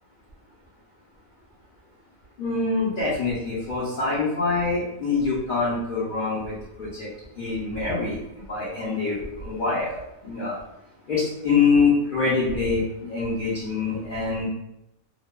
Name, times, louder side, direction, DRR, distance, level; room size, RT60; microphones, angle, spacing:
voice 1, 2.4-7.1 7.4-8.2 8.5-10.6 11.1-14.5, left 4 dB, 50° left, -9 dB, 0.7 m, -25 dB
2.6 x 2.2 x 2.2 m, 0.85 s
omnidirectional pair, 1.5 m